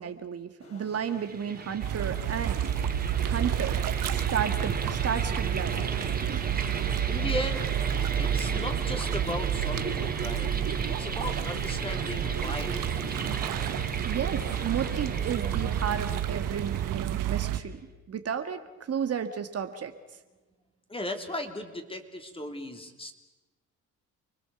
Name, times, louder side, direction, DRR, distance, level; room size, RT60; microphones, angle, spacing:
voice 1, 0.0-2.6 3.2-3.8 4.1-5.8 6.2-6.5 14.0-17.8 18.1-19.9, right 8 dB, 45° right, 7 dB, 1.8 m, -33 dB
sound 1, 0.6-15.5, left 2 dB, 45° left, 6.6 m, -49 dB
sound 2, 1.1-17.7, right 4 dB, 25° right, 3.1 m, -36 dB
sound 3, 1.8-17.6, right 10 dB, 70° right, 1.3 m, -30 dB
voice 2, 7.1-7.8 8.2-13.3 20.9-23.1, left 1 dB, 15° left, 5 dB, 3.2 m, -37 dB
29.0 x 20.0 x 7.1 m, 1.1 s
supercardioid pair, 85°, 33 cm